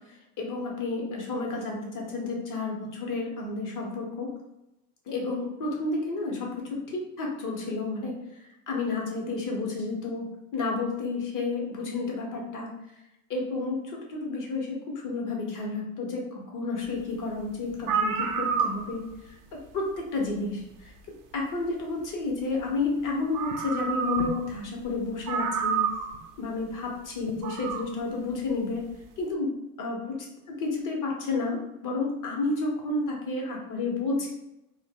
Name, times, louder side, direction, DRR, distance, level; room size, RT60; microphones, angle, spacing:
voice 1, 0.1-4.3 5.1-8.2 8.7-12.7 13.3-19.3 19.7-20.9 21.3-25.9 26.4-28.9 29.2-29.5 29.8-30.2 30.5-34.3, left 3 dB, 50° left, -1 dB, 1.1 m, -31 dB
sound 1, 17.4-17.5 17.8-19.2 20.6-20.7 22.9-23.0 23.3-24.5 24.8-24.9 25.3-26.2 27.3-27.9, right 6 dB, 55° right, 0.5 m, -29 dB
2.5 x 2.2 x 3.7 m, 0.90 s
supercardioid pair, 95°, 41 cm